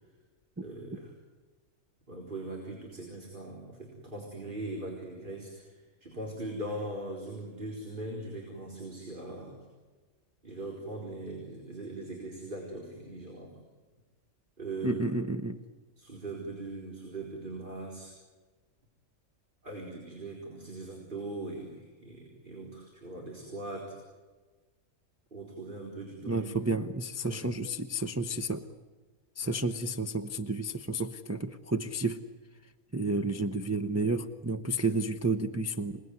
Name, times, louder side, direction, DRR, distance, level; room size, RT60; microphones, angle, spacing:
voice 1, 0.6-1.1 2.1-5.7 6.0-9.6 10.4-13.6 14.6-15.0 16.0-18.1 19.6-24.0 25.3-26.5 27.2-27.5 29.4-29.6, right 2 dB, 35° right, -1 dB, 4.4 m, -40 dB
voice 2, 14.8-15.6 26.3-28.7 29.4-32.2 32.9-36.0, right 2 dB, 15° right, 6 dB, 0.7 m, -31 dB
27.5 x 19.5 x 9.6 m, 1.3 s
omnidirectional pair, 1.5 m